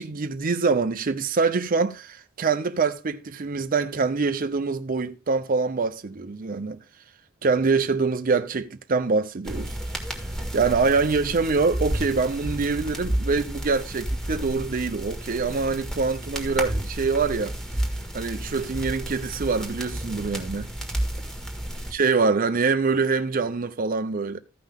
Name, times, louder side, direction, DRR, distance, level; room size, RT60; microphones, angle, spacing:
voice 1, 0.0-6.8 7.4-9.8 10.5-17.5 18.1-20.7 21.9-24.4, right 4 dB, 40° right, 0.6 m, -24 dB
sound 1, 9.5-21.9, right 1 dB, ahead, 1.7 m, -31 dB
14.5 x 5.5 x 3.5 m
head